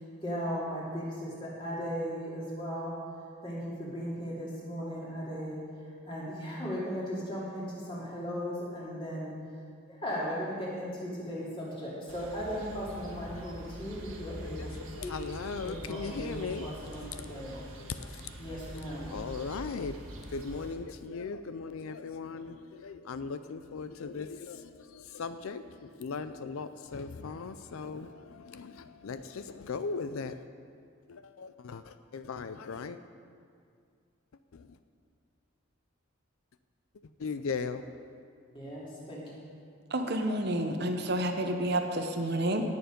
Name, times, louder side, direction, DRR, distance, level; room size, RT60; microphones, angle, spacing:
voice 1, 0.2-3.1 3.4-5.7 6.1-9.4 9.9-14.7 15.0-15.1 15.6-17.7 18.4-19.1 38.5-39.3, equal, 25° left, -6 dB, 2.6 m, -37 dB
sound 1, 12.1-20.7, equal, 70° right, 1.5 m, -45 dB
voice 2, 14.2-18.3 18.9-20.0 20.2-30.4 31.1-33.0 34.5-34.8 37.2-38.1, left 5 dB, 75° left, 11 dB, 0.4 m, -39 dB
voice 3, 39.9-42.6, right 1 dB, 50° right, 5 dB, 0.9 m, -29 dB
18.0 x 7.0 x 5.2 m, 2.2 s
head